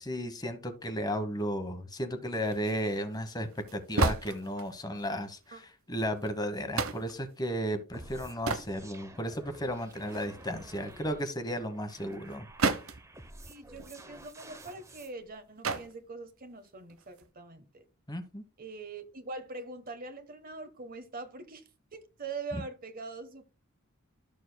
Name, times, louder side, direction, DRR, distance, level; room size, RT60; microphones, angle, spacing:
voice 1, 0.0-5.6 5.9-12.5 18.1-18.4 22.5-22.6, equal, 20° left, 1.1 m, -34 dB
sound 1, 2.3-5.0 5.5-5.6 6.0-6.3 6.8-7.2 8.0-8.7 9.2-9.3 9.7-11.3 12.1-13.1 13.4-13.5 13.7-15.3 15.6-15.9 16.9-17.3, right 3 dB, 75° right, 0.8 m, -34 dB
sound 2, 7.9-15.1, right 1 dB, 15° right, 0.8 m, -51 dB
voice 2, 13.5-17.8 18.6-23.5, right 3 dB, 40° right, 1.2 m, -43 dB
12.5 x 6.9 x 2.2 m
head